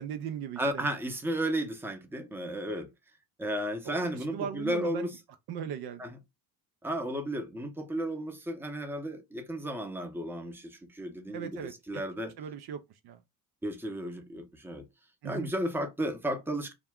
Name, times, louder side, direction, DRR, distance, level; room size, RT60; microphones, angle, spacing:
voice 1, 0.0-0.9 3.9-4.1 4.3-5.1 5.5-6.0 11.3-12.0 12.4-12.8 13.0-13.2 15.2-15.5, right 8 dB, 55° right, 0.5 m, -38 dB
voice 2, 0.6-2.9 3.4-5.1 6.0-6.2 6.8-12.3 13.6-14.9 15.2-16.7, right 1 dB, 5° right, 0.7 m, -33 dB
2.4 x 2.1 x 3.5 m
hypercardioid pair, 60°, 48 cm